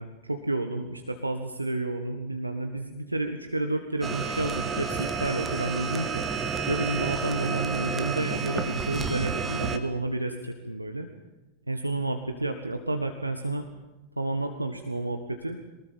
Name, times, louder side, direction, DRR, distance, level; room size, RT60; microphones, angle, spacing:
voice 1, 0.0-6.2 6.7-11.1 11.7-13.7 14.2-15.6, right 2 dB, 85° right, 6 dB, 1.6 m, -30 dB
sound 1, 4.0-9.8, right 5 dB, 15° right, 2.5 m, -31 dB
23.5 x 20.5 x 7.6 m, 1.1 s
figure-of-eight pair, 90°, 0 cm